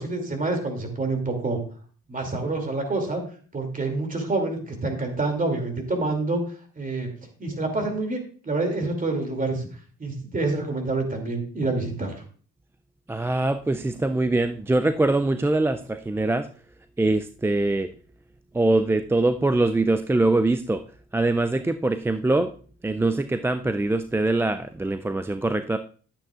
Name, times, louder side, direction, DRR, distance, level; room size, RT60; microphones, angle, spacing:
voice 1, 0.0-1.6 2.1-3.2 3.5-6.4 6.8-7.1 7.4-9.7 10.0-12.2, right 2 dB, 25° right, 4 dB, 2.6 m, -27 dB
voice 2, 13.1-16.5 17.0-17.9 18.5-20.8 21.1-22.5 22.8-25.8, right 2 dB, 10° right, 9 dB, 0.3 m, -23 dB
11.5 x 8.8 x 2.4 m, 0.42 s
cardioid pair, 90°, 30 cm